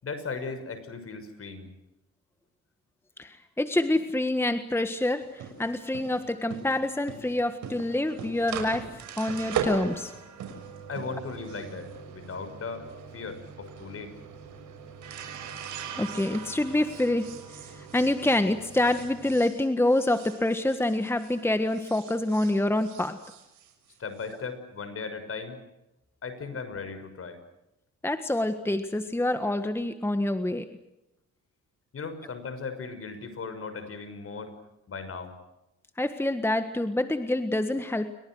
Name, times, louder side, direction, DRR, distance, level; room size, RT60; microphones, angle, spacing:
voice 1, 0.0-1.7 10.9-12.9 13.1-14.2 24.0-25.6 26.2-27.4 31.9-34.5 34.9-35.3, left 4 dB, 50° left, 10 dB, 6.2 m, -37 dB
voice 2, 3.2-8.9 9.2-10.1 15.9-17.3 17.9-23.2 28.0-30.7 36.0-38.1, left 1 dB, 10° left, 9 dB, 1.6 m, -26 dB
sound 1, 5.2-21.4 21.7-24.3, right 6 dB, 80° right, 6.5 m, -39 dB
29.5 x 24.0 x 6.4 m, 0.91 s
cardioid pair, 90°, 30 cm